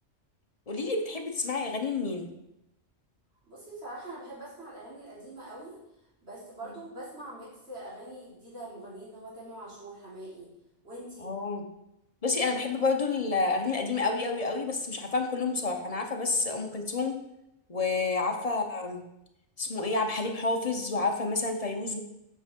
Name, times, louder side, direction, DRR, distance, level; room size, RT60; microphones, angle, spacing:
voice 1, 0.7-2.3 11.2-11.6 12.2-17.2 17.7-19.0 19.6-22.0, left 3 dB, 35° left, 3 dB, 0.9 m, -29 dB
voice 2, 3.4-5.8 6.2-10.5 10.8-11.3, right 1 dB, 60° right, -8 dB, 3.5 m, -43 dB
8.1 x 5.8 x 4.5 m, 0.85 s
omnidirectional pair, 1.2 m